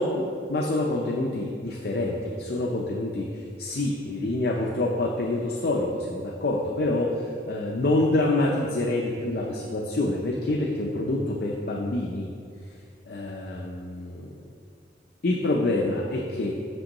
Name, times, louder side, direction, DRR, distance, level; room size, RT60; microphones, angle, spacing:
voice 1, 0.0-12.3 13.1-14.3 15.2-16.6, left 2 dB, 55° left, -1 dB, 0.5 m, -27 dB
7.7 x 6.0 x 2.9 m, 2.3 s
head